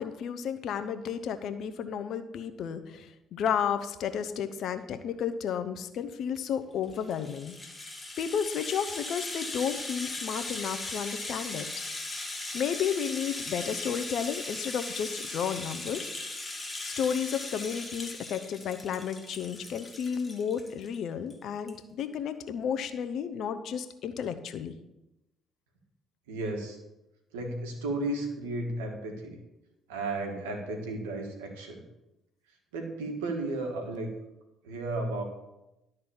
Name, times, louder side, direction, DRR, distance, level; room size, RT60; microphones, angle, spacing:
voice 1, 0.0-7.5 8.2-11.7 12.5-16.1 16.8-24.7, left 7 dB, 65° left, 10 dB, 0.8 m, -32 dB
Rattle (instrument), 6.8-21.0 21.3-21.4 21.7-21.8, left 2 dB, 20° left, 2.2 m, -38 dB
voice 2, 26.3-26.8 27.3-29.4 29.9-31.8 32.7-34.1 34.6-35.2, right 2 dB, 90° right, 3 dB, 1.6 m, -34 dB
12.0 x 4.1 x 7.1 m, 0.93 s
hypercardioid pair, 55°, 0 cm